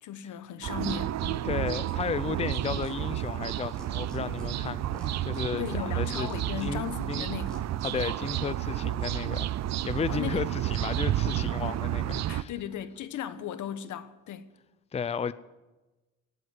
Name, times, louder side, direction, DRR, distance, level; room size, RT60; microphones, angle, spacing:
voice 1, 0.0-1.5 5.5-7.7 8.0-8.1 10.1-10.5 12.3-14.5, left 9 dB, 75° left, 1.1 m, -37 dB
sound 1, 0.6-12.4, right 13 dB, 60° right, 0.6 m, -31 dB
voice 2, 1.4-6.3 6.6-7.3 7.8-9.5 9.8-12.5 14.9-15.3, left 6 dB, 20° left, 0.5 m, -34 dB
sound 2, 1.8-2.0 2.5-3.3 3.7-4.5 4.9-5.8 6.3-7.0 7.5-7.9, left 1 dB, 5° left, 3.6 m, -57 dB
18.0 x 8.0 x 9.4 m
cardioid pair, 90°, 30 cm